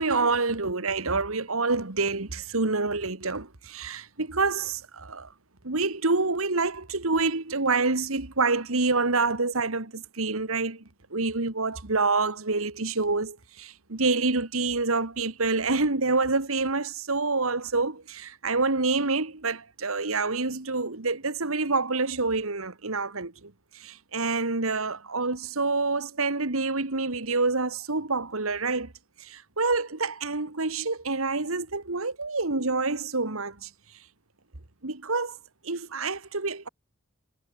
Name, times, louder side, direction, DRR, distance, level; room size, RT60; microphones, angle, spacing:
voice 1, 0.0-5.3 5.6-10.8 11.1-28.9 29.2-33.7 34.8-35.4 35.6-36.7, right 3 dB, 80° right, 2.1 m, -27 dB
head